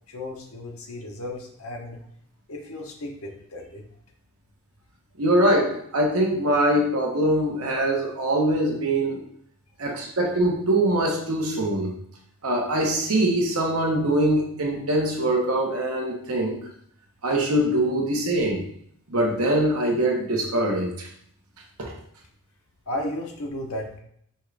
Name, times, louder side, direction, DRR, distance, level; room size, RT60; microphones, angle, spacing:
voice 1, 0.1-2.0 2.5-3.8 22.9-24.0, left 1 dB, 70° left, 1 dB, 0.9 m, -34 dB
voice 2, 5.2-9.2 9.8-11.9 12.4-16.6 17.2-18.7 19.1-21.1 21.8-21.9, right 1 dB, 80° right, 0 dB, 1.0 m, -23 dB
5.4 x 2.5 x 3.3 m, 0.67 s
head